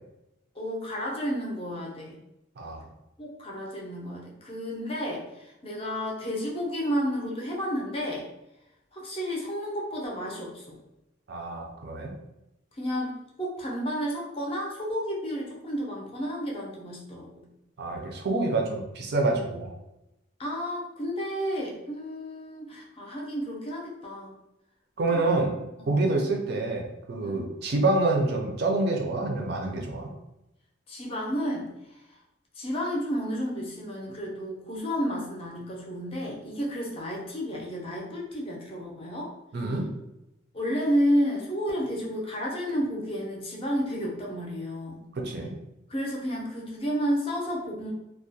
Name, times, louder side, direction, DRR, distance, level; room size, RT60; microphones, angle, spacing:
voice 1, 0.5-2.2 3.2-8.3 8.9-10.8 12.8-17.5 20.4-24.3 25.1-25.3 25.8-26.1 27.2-27.5 30.9-32.2 32.6-39.3 40.5-45.1 45.9-47.9, equal, 30° left, -2 dB, 0.5 m, -31 dB
voice 2, 11.3-12.1 17.8-19.7 25.0-25.5 25.9-30.1 39.5-39.9 45.1-45.5, right 2 dB, 55° right, 1 dB, 0.4 m, -27 dB
2.3 x 2.1 x 2.7 m, 0.91 s
head